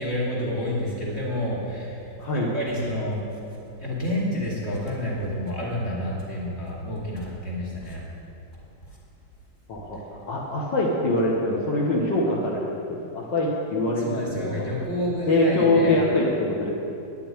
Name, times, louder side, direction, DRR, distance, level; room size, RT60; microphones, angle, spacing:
voice 1, 0.0-2.0 2.3-3.2 3.8-8.0 14.0-16.0, left 1 dB, 30° left, -5 dB, 2.8 m, -29 dB
voice 2, 2.2-2.5 9.7-14.7 15.3-16.7, left 2 dB, 70° left, -4 dB, 2.0 m, -24 dB
10.5 x 6.9 x 8.9 m, 2.7 s
omnidirectional pair, 2.1 m